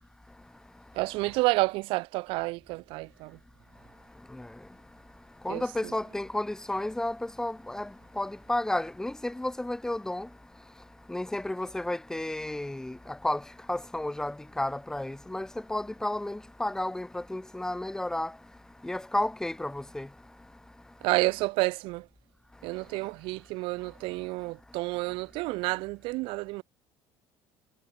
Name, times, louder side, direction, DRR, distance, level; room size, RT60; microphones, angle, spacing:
voice 1, 0.9-3.4 5.5-5.9 21.0-22.1 22.6-26.6, right 23 dB, 85° right, 1.9 m, -30 dB
voice 2, 5.4-7.9 8.2-10.3 11.1-13.0 13.2-13.4 13.7-18.3 18.8-20.1, left 1 dB, 5° left, 2.0 m, -32 dB
cardioid pair, 140°, 9 cm